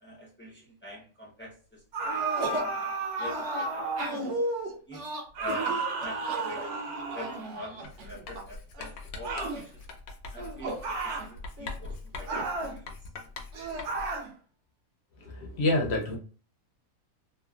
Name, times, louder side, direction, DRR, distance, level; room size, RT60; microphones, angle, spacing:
voice 1, 0.0-1.8 2.1-2.9 3.2-4.3 4.9-5.7 6.0-6.6 7.1-9.7 10.3-10.8 11.0-12.9, left 1 dB, 15° left, -3 dB, 0.3 m, -44 dB
sound 1, 1.9-4.2 5.3-7.6 9.2-9.6 10.8-11.3 12.3-12.8 13.8-14.3, right 3 dB, 90° right, 1.2 m, -33 dB
sound 2, 2.1-2.8 3.2-8.4 8.7-9.6 10.3-10.9 11.2-11.3 11.6-12.5 13.5-13.8, right 1 dB, 60° right, 0.9 m, -35 dB
Writing, 7.8-14.2, left 3 dB, 80° left, 1.1 m, -43 dB
voice 2, 15.2-16.2, left 2 dB, 60° left, 0 dB, 0.7 m, -27 dB
3.0 x 2.2 x 2.3 m, 0.38 s
omnidirectional pair, 1.6 m